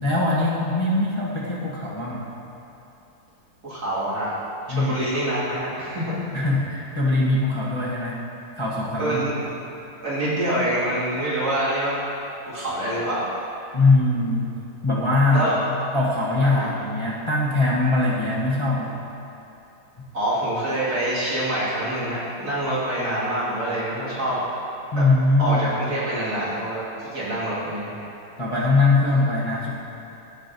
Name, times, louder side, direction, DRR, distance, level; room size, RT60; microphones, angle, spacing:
voice 1, 0.0-2.3 4.7-5.0 6.3-8.2 8.6-9.2 13.7-14.6 14.8-15.5 15.9-19.0 24.9-25.6 28.4-29.7, left 2 dB, 25° left, -7 dB, 0.8 m, -21 dB
voice 2, 3.6-4.3 4.7-6.2 9.0-9.3 10.0-12.0 12.5-13.2 15.3-15.7 16.4-16.7 20.1-24.4 24.9-25.0 25.4-27.9, right 1 dB, 70° right, -10 dB, 2.7 m, -26 dB
16.0 x 5.8 x 2.7 m, 2.9 s
omnidirectional pair, 1.7 m